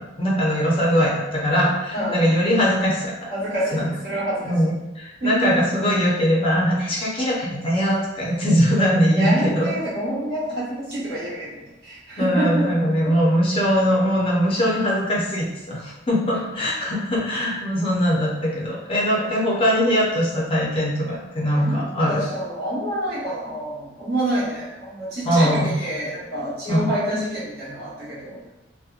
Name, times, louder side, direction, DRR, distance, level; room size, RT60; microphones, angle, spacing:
voice 1, 0.2-3.3 3.7-3.9 4.4-9.7 12.2-22.2 25.2-25.8 26.7-26.9, equal, 30° left, -5 dB, 0.5 m, -21 dB
voice 2, 1.9-2.2 3.3-4.5 5.2-5.7 9.1-12.7 16.2-16.6 19.2-19.3 21.5-28.4, right 1 dB, 55° right, -9 dB, 1.1 m, -27 dB
2.8 x 2.1 x 2.3 m, 0.96 s
head